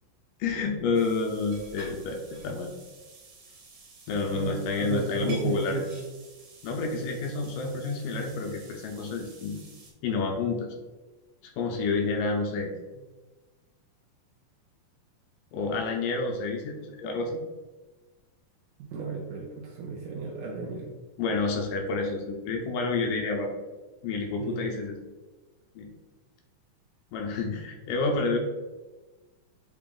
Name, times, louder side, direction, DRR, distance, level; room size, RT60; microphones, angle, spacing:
voice 1, 0.4-2.7 4.1-5.8 6.6-9.6 10.0-10.8 11.6-12.7 15.5-17.4 21.2-23.5 24.0-25.0 25.8-25.9 27.1-28.4, left 4 dB, 80° left, 1 dB, 2.0 m, -29 dB
sound 1, 0.9-9.9, right 2 dB, 65° right, 1.7 m, -50 dB
voice 2, 4.3-6.0 18.9-20.9 24.4-24.6, right 4 dB, 80° right, 0 dB, 1.9 m, -33 dB
5.8 x 2.1 x 3.6 m, 1.2 s
omnidirectional pair, 4.0 m